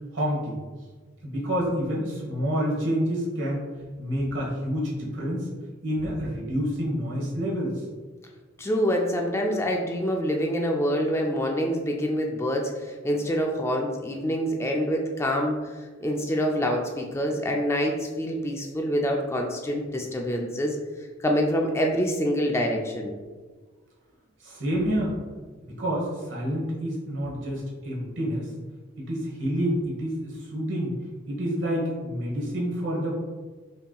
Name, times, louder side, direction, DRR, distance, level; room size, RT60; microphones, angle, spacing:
voice 1, 0.1-0.6 1.2-3.6 4.0-5.5 5.8-7.8 24.4-25.1 25.8-28.5 29.0-30.9 31.3-33.1, equal, 70° right, -4 dB, 1.2 m, -28 dB
voice 2, 8.6-12.7 13.0-15.6 16.0-20.8 21.2-23.1, equal, 15° left, 1 dB, 0.3 m, -26 dB
5.3 x 2.8 x 2.3 m, 1.4 s
head